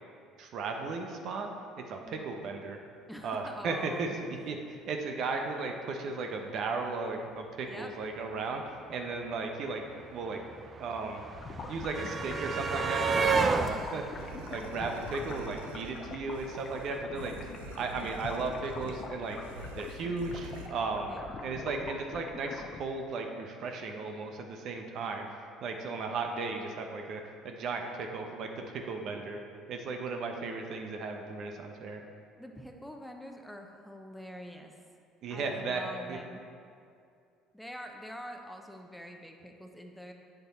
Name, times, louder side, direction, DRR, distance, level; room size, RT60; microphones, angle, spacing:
voice 1, 0.4-1.5 1.9-2.8 3.2-9.8 10.1-10.4 10.8-11.2 11.7-17.5 17.8-19.4 19.7-25.3 25.6-29.4 29.7-32.0 35.2-36.2, right 3 dB, 60° right, 3 dB, 0.8 m, -36 dB
voice 2, 3.1-4.2 7.6-7.9 21.1-21.5 32.4-34.8 35.3-36.4 37.5-40.1, equal, 5° left, 3 dB, 0.9 m, -45 dB
sound 1, 9.1-9.2 9.4-15.6 16.8-16.9 17.2-17.3, right 4 dB, 40° right, 0.5 m, -32 dB
sound 2, 11.3-22.8, left 4 dB, 45° left, 0.6 m, -44 dB
sound 3, 13.3-20.7, right 4 dB, 80° right, 0.6 m, -47 dB
8.3 x 6.7 x 4.2 m, 2.3 s
hypercardioid pair, 60°, 0 cm